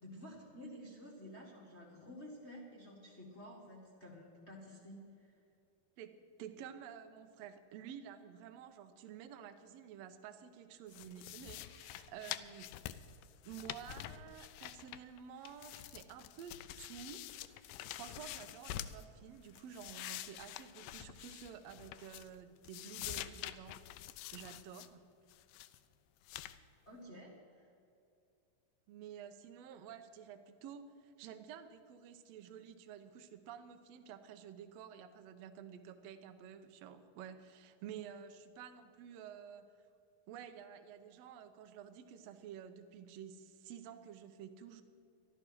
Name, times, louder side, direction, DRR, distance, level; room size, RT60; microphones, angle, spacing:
voice 1, 0.0-5.4 26.8-27.7, equal, 35° left, -3 dB, 1.0 m, -52 dB
voice 2, 6.4-12.7 13.4-17.6 17.9-23.8 24.3-25.1 28.9-39.7 40.3-44.8, right 8 dB, 70° right, 8 dB, 1.6 m, -51 dB
sound 1, 10.9-15.2 15.4-19.0 19.4-22.4 22.6-24.9 25.3-25.8 26.3-26.6, left 13 dB, 90° left, 2.3 m, -47 dB
14.0 x 12.0 x 6.2 m, 2.6 s
omnidirectional pair, 3.9 m